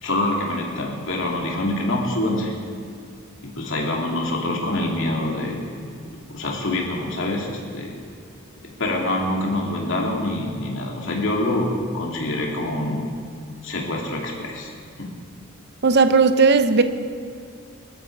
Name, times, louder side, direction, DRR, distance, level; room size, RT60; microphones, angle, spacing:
voice 1, 0.0-2.5 3.4-5.9 6.3-7.9 8.8-13.1 13.6-14.7 15.0-15.1, left 1 dB, 60° left, -1 dB, 2.8 m, -25 dB
voice 2, 15.8-16.8, right 4 dB, 50° right, 10 dB, 0.8 m, -16 dB
20.5 x 12.5 x 4.8 m, 2.4 s
head